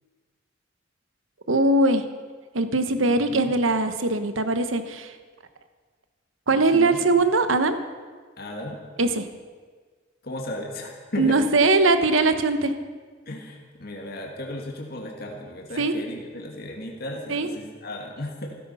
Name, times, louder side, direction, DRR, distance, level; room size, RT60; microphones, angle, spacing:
voice 1, 1.5-2.0 2.5-5.1 6.5-7.8 9.0-9.2 11.2-12.7 15.8-15.9 17.3-17.5, right 2 dB, 85° right, 9 dB, 1.1 m, -21 dB
voice 2, 3.0-3.5 6.5-7.0 8.4-8.8 10.2-11.4 13.3-18.6, left 1 dB, 50° left, 0 dB, 2.1 m, -35 dB
16.0 x 13.5 x 5.6 m, 1.5 s
head